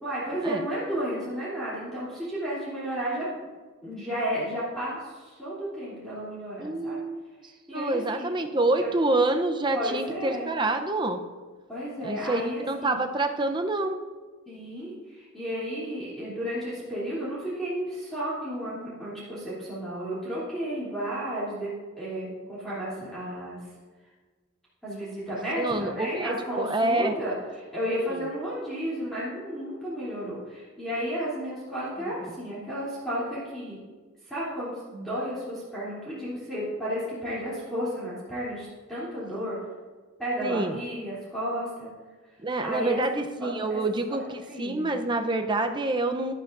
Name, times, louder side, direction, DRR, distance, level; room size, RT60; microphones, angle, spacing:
voice 1, 0.0-3.3 3.8-7.0 7.7-8.3 8.8-8.9 9.7-10.5 11.7-13.0 14.5-23.6 24.8-27.4 27.7-33.8 34.2-39.6 40.2-41.9 42.6-43.8 44.1-44.2 44.5-45.0, equal, ahead, -11 dB, 2.9 m, -33 dB
voice 2, 6.6-7.2 7.7-11.2 12.0-14.0 25.6-27.1 32.2-32.3 40.4-40.8 42.4-46.3, right 2 dB, 20° right, 5 dB, 0.6 m, -27 dB
12.0 x 11.5 x 2.6 m, 1.4 s
head